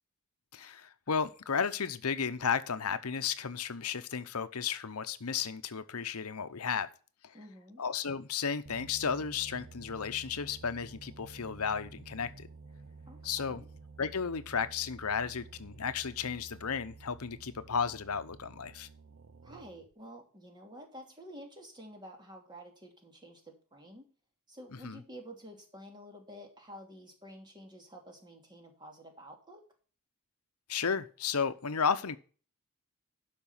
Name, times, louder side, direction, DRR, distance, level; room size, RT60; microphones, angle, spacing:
voice 1, 0.5-6.9 7.2-7.4 7.8-12.5 13.2-13.6 14.0-18.9 24.8-25.0 30.7-32.2, left 6 dB, 85° left, 0.9 m, -33 dB
voice 2, 7.3-7.8 13.1-13.7 19.4-24.1 24.5-29.6, equal, 20° right, 2.7 m, -50 dB
sound 1, 8.6-19.9, right 4 dB, 60° right, 0.7 m, -52 dB
12.0 x 5.3 x 5.6 m
head